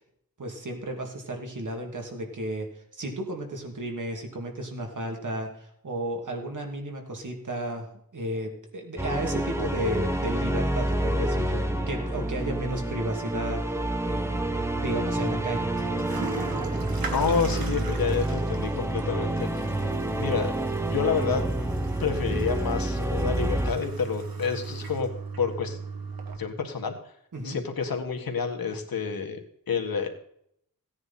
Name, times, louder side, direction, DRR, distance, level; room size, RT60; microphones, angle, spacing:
voice 1, 0.4-13.8 14.1-15.7 27.3-27.6, right 1 dB, 60° right, 2 dB, 2.7 m, -33 dB
sound 1, 9.0-23.7, right 1 dB, 10° right, 1.2 m, -28 dB
Toilet flush, 14.4-26.4, right 4 dB, 85° right, 1.8 m, -36 dB
voice 2, 17.1-19.7 20.2-20.5 20.9-21.4 22.0-25.1 25.4-25.8 26.4-26.9 27.4-29.4 29.7-30.1, left 6 dB, 80° left, 4 dB, 1.9 m, -28 dB
16.5 x 9.7 x 4.3 m, 0.69 s
wide cardioid pair, 100°, 35 cm